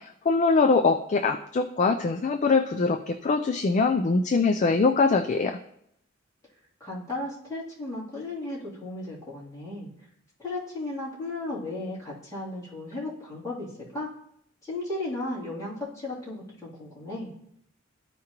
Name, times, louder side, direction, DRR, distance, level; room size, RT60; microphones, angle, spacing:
voice 1, 0.0-5.6, left 4 dB, 35° left, 7 dB, 0.3 m, -23 dB
voice 2, 6.8-9.9 10.4-14.1 14.6-17.3, left 2 dB, 15° left, -8 dB, 3.0 m, -35 dB
13.5 x 4.8 x 3.0 m, 0.75 s
head